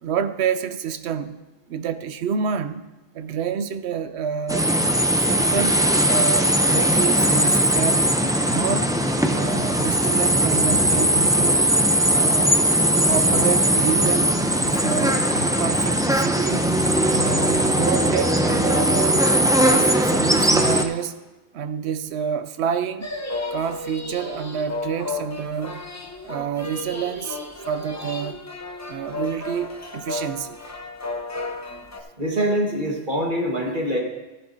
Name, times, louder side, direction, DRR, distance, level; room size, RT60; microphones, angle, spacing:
voice 1, 0.0-1.4 1.7-2.9 3.1-4.7 5.2-5.8 6.1-8.1 8.5-8.9 9.3-11.7 12.1-12.6 13.1-16.7 17.1-19.3 19.6-21.2 21.5-23.1 23.5-25.8 26.2-27.4 27.7-28.5 28.9-30.6, right 7 dB, 80° right, 12 dB, 0.9 m, -28 dB
sound 1, 4.5-20.8, right 1 dB, 5° right, 0.3 m, -19 dB
sound 2, 23.0-32.0, left 3 dB, 15° left, 0.7 m, -33 dB
voice 2, 32.2-34.0, right 1 dB, 50° right, -1 dB, 1.7 m, -24 dB
14.5 x 11.0 x 2.7 m, 1.1 s
omnidirectional pair, 1.1 m